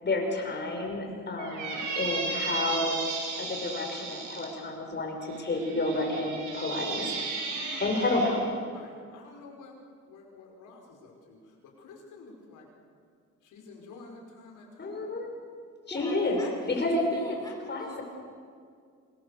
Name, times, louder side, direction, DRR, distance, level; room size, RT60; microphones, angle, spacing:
voice 1, 0.0-3.0 3.3-7.1 7.8-8.4 14.8-15.3 15.9-16.4 16.7-17.3 17.7-18.0, left 2 dB, 35° left, 1 dB, 6.5 m, -30 dB
voice 2, 1.0-1.3 7.3-8.1 8.7-9.8 10.0-12.7 13.4-15.1, left 3 dB, 80° left, 1 dB, 5.1 m, -50 dB
Squeak, 1.4-4.5 5.3-8.4, right 4 dB, 85° right, 6.9 m, -35 dB
voice 3, 15.9-18.0, left 1 dB, 15° left, -1 dB, 3.8 m, -44 dB
25.5 x 21.0 x 7.0 m, 2.1 s
cardioid pair, 90°, 30 cm